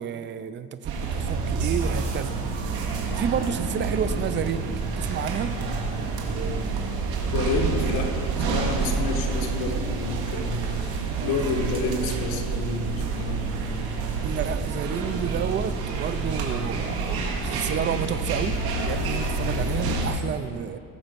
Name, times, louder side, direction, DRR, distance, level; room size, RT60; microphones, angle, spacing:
voice 1, 0.0-2.4 3.1-5.5 14.2-17.2 17.4-20.8, right 8 dB, 30° right, 12 dB, 0.5 m, -30 dB
sound 1, 0.8-20.1, right 4 dB, 70° right, 2.2 m, -28 dB
voice 2, 7.3-11.0 11.2-13.7, left 3 dB, 65° left, 2 dB, 1.8 m, -30 dB
19.0 x 7.1 x 5.2 m, 2.4 s
cardioid pair, 125°, 39 cm